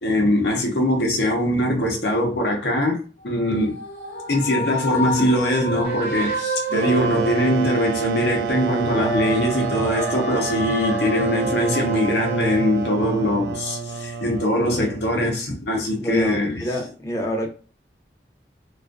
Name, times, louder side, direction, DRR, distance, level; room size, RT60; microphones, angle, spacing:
voice 1, 0.0-3.8 4.3-16.6, left 1 dB, 75° left, 0.7 m, -22 dB
sound 1, 3.2-8.2 8.6-13.3, equal, 50° left, 1.0 m, -30 dB
sound 2, 5.8-6.5, right 2 dB, 50° right, 0.7 m, -37 dB
sound 3, 6.7-15.2, right 5 dB, 75° right, 0.3 m, -28 dB
voice 2, 16.0-17.5, left 1 dB, 15° left, 0.5 m, -27 dB
2.5 x 2.3 x 2.2 m
head